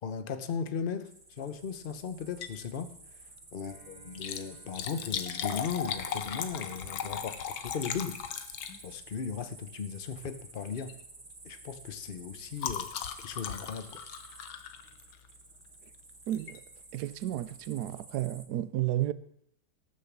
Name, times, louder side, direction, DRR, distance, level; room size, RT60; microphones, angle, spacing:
voice 1, 0.0-2.9 3.5-8.2 8.8-10.9 11.4-14.0, left 6 dB, 50° left, 0.6 m, -37 dB
sound 1, 1.0-18.5, right 3 dB, 25° right, 1.5 m, -52 dB
Liquid, 2.2-2.7 3.0-3.1 4.0-9.2 10.1-10.4 10.8-11.0 11.3-15.4 16.3-16.6 17.1-17.2 17.4-17.5, left 8 dB, 85° left, 1.8 m, -38 dB
Bowed string instrument, 3.6-8.5, right 4 dB, 45° right, 2.8 m, -59 dB
voice 2, 16.3-16.6 16.9-19.1, right 13 dB, 65° right, 1.1 m, -32 dB
18.5 x 6.9 x 7.4 m
omnidirectional pair, 2.2 m